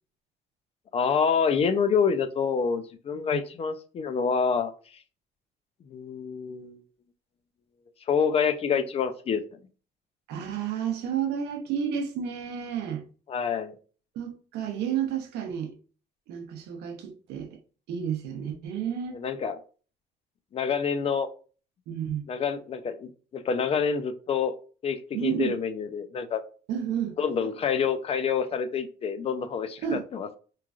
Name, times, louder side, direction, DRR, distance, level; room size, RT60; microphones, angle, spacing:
voice 1, 0.9-4.7 5.9-6.8 8.1-9.4 13.3-13.7 19.1-19.6 20.5-21.3 22.3-24.5 24.8-26.4 27.2-30.4, left 6 dB, 35° left, 0.4 m, -27 dB
voice 2, 10.3-13.0 14.1-15.7 16.3-17.6 17.9-19.2 21.9-22.2 25.1-25.6 26.7-27.1 29.8-30.0, right 8 dB, 80° right, 0.7 m, -31 dB
3.1 x 2.3 x 2.4 m
cardioid pair, 110°, 17 cm